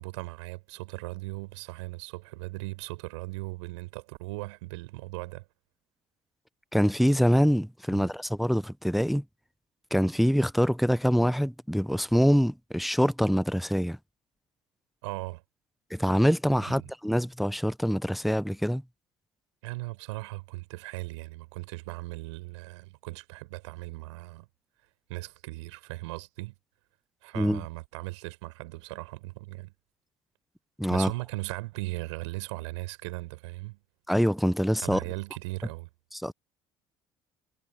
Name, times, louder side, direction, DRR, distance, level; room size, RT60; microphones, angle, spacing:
voice 1, 0.0-5.5 7.9-8.1 15.0-15.4 16.7-16.9 19.6-24.5 25.1-26.6 27.2-29.7 30.9-33.8 34.8-35.9, right 22 dB, 75° right, 5.5 m, -38 dB
voice 2, 6.7-9.2 9.9-14.0 15.9-18.8 27.3-27.6 30.8-31.1 34.1-35.0 36.2-36.3, equal, ahead, 0.9 m, -25 dB
hypercardioid pair, 60°, 15 cm